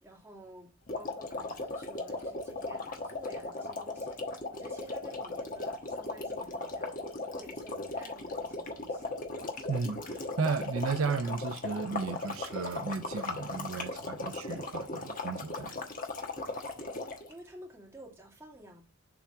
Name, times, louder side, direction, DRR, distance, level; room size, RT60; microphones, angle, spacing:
voice 1, 0.0-4.2 4.5-9.2 17.3-18.8, right 1 dB, 10° right, 2.0 m, -52 dB
sound 1, 0.9-17.3, left 2 dB, 40° left, 1.2 m, -37 dB
voice 2, 9.7-15.8, right 4 dB, 75° right, 0.6 m, -34 dB
7.1 x 3.5 x 5.7 m
head